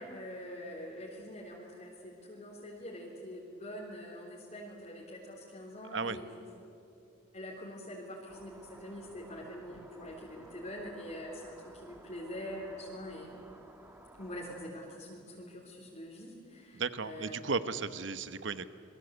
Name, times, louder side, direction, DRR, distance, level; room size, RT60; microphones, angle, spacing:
voice 1, 0.0-6.3 7.3-13.4 14.2-17.4, equal, 40° left, -4 dB, 3.7 m, -44 dB
sound 1, 8.3-14.7, right 1 dB, 10° right, 1.6 m, -56 dB
voice 2, 16.7-18.7, right 4 dB, 70° right, 12 dB, 1.1 m, -35 dB
28.0 x 22.5 x 8.2 m, 2.7 s
head